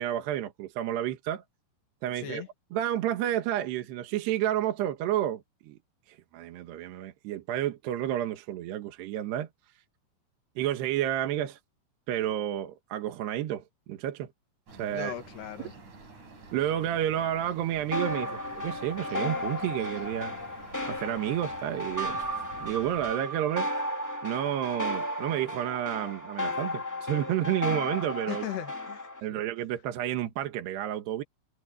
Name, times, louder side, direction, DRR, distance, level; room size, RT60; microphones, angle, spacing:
voice 1, 0.0-1.4 2.0-2.4 2.7-5.8 6.1-9.5 10.6-11.6 12.1-14.3 14.8-15.1 16.5-20.3 20.9-22.3 22.6-23.7 24.2-28.5 29.2-31.2, right 12 dB, 65° right, 3.1 m, -30 dB
voice 2, 2.2-2.5 14.9-15.7 28.3-29.0 29.3-29.4, left 10 dB, 60° left, 3.8 m, -38 dB
sound 1, 14.7-23.1, right 3 dB, 35° right, 7.2 m, -49 dB
sound 2, 17.9-29.2, left 1 dB, 20° left, 0.4 m, -34 dB
omnidirectional pair, 5.8 m